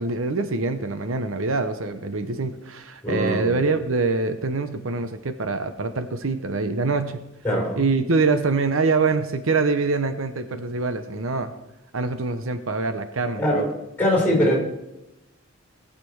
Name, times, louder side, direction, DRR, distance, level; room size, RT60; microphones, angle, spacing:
voice 1, 0.0-7.2 7.8-11.5 11.9-13.6, right 3 dB, 75° right, 9 dB, 0.8 m, -24 dB
voice 2, 3.0-3.6 7.4-7.8 13.4-13.6 14.0-14.6, equal, 10° left, -1 dB, 4.9 m, -21 dB
19.0 x 6.8 x 4.7 m, 0.95 s
head